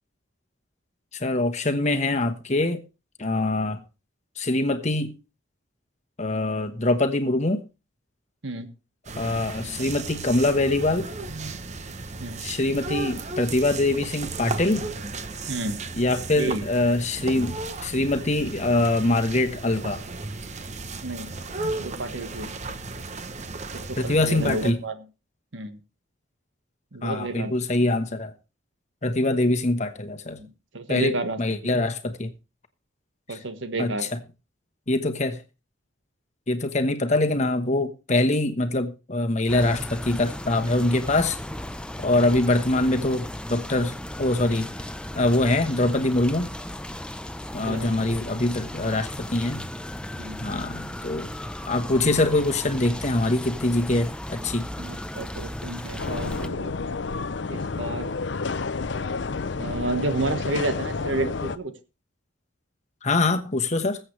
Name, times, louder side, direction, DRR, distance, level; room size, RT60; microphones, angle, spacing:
voice 1, 1.1-2.8 3.2-3.8 4.4-5.1 6.2-7.6 9.2-11.1 12.4-14.9 16.0-17.5 17.8-20.0 24.0-24.8 27.0-28.3 29.0-30.4 30.9-32.3 33.3-33.4 33.8-33.9 34.9-35.4 36.5-41.4 42.0-44.7 45.1-46.5 47.5-49.7 50.4-51.3 51.7-54.7 63.0-64.0, left 2 dB, 35° left, 1.2 m, -24 dB
sound 1, 9.0-24.7, right 3 dB, 35° right, 0.8 m, -35 dB
voice 2, 15.5-15.8 16.4-16.7 21.0-21.3 21.8-22.5 23.7-25.0 25.5-25.8 26.9-27.5 30.4-31.9 33.3-34.1 47.7-48.5 50.2-50.4 54.8-56.8 57.5-58.1 59.6-61.7, right 2 dB, 75° right, 1.5 m, -31 dB
sound 2, 39.5-56.5, left 1 dB, 5° left, 0.6 m, -36 dB
sound 3, 56.0-61.6, left 4 dB, 65° left, 0.6 m, -30 dB
21.0 x 7.9 x 3.2 m
head